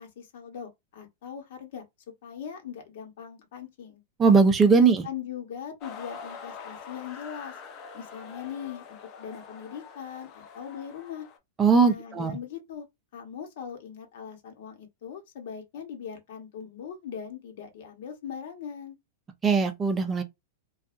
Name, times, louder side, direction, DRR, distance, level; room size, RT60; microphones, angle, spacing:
voice 1, 0.0-1.8 2.2-4.0 5.0-7.5 7.9-11.3 11.8-12.9 13.1-19.0, left 8 dB, 65° left, 1.1 m, -40 dB
voice 2, 4.2-5.1 11.6-12.3 19.4-20.2, right 5 dB, 20° right, 0.5 m, -20 dB
sound 1, 5.8-11.4, left 6 dB, 35° left, 0.6 m, -44 dB
2.6 x 2.3 x 2.5 m
hypercardioid pair, 135°, 0 cm